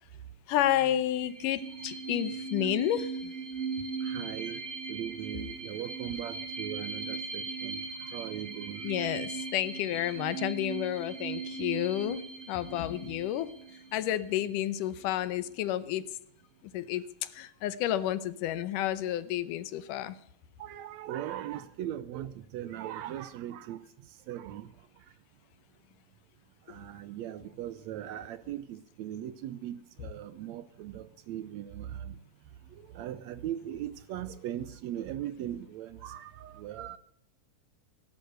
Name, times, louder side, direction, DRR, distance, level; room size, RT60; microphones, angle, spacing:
voice 1, 0.5-3.3 4.5-4.6 8.8-16.0 16.7-20.2, left 12 dB, 80° left, 2.4 m, -31 dB
sound 1, 1.1-14.5, right 4 dB, 25° right, 2.3 m, -39 dB
voice 2, 4.0-4.6 4.9-8.8 20.6-23.8 24.3-24.7 26.7-32.1 32.9-37.0, right 11 dB, 75° right, 1.7 m, -39 dB
17.5 x 11.5 x 6.6 m
omnidirectional pair, 3.8 m